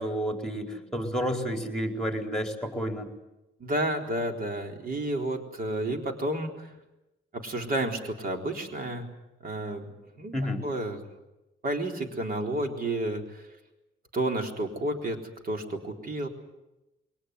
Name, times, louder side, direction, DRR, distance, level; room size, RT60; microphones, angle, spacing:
voice 1, 0.0-3.1 10.3-10.6, equal, ahead, 3 dB, 4.4 m, -30 dB
voice 2, 3.6-6.7 7.3-9.1 9.4-10.3 10.6-11.0 11.6-13.5 14.1-15.2 15.4-16.3, right 1 dB, 45° right, 3 dB, 4.0 m, -31 dB
22.5 x 19.0 x 9.7 m, 0.96 s
cardioid pair, 90°, 20 cm